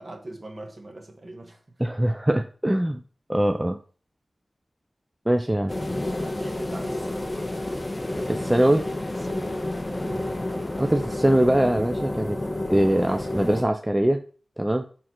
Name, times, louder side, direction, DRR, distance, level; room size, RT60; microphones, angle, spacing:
voice 1, 0.0-1.6 5.7-7.7 8.8-9.6 10.0-10.3, right 2 dB, 40° right, 1.4 m, -42 dB
voice 2, 1.8-3.0 3.3-3.8 5.3-5.7 8.3-8.9 10.8-12.4 12.7-14.2 14.6-14.8, right 1 dB, 10° right, 0.4 m, -22 dB
sound 1, 5.7-13.6, left 1 dB, 25° left, 0.7 m, -30 dB
6.4 x 3.8 x 4.4 m
wide cardioid pair, 90°, 0 cm